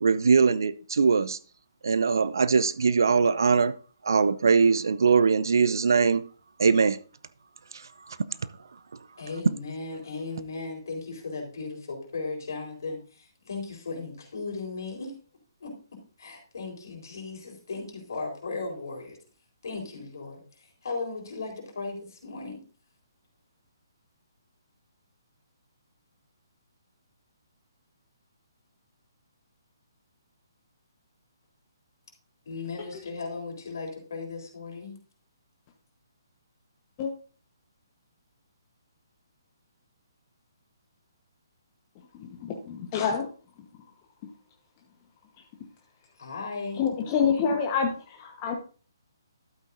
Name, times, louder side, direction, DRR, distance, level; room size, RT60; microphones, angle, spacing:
voice 1, 0.0-1.4 1.8-3.8 4.0-6.2 6.6-7.0 8.1-8.2, right 5 dB, 60° right, 0.5 m, -21 dB
voice 2, 9.2-15.1 15.6-15.7 16.2-19.2 19.6-20.4 20.8-22.6 32.5-35.0 46.2-46.8 47.4-47.5, left 3 dB, 60° left, 4.2 m, -36 dB
voice 3, 42.4-43.3 46.8-48.5, left 6 dB, 30° left, 1.1 m, -27 dB
12.0 x 8.2 x 2.6 m
figure-of-eight pair, 135°, 2 cm